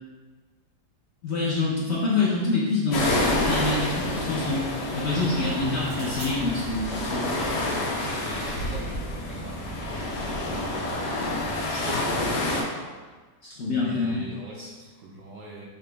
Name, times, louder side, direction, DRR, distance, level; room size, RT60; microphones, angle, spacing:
voice 1, 1.2-4.7 4.9-7.3 7.9-8.1 13.4-14.2, left 3 dB, 55° left, -6 dB, 0.8 m, -26 dB
sound 1, 2.1-3.0 5.8-6.3, right 2 dB, 85° right, 1.7 m, -46 dB
sound 2, 2.9-12.6, left 1 dB, 85° left, 1.4 m, -28 dB
voice 2, 5.0-5.9 8.0-12.8 13.7-15.7, right 2 dB, 60° right, -4 dB, 0.9 m, -42 dB
4.9 x 2.8 x 3.4 m, 1.4 s
omnidirectional pair, 1.8 m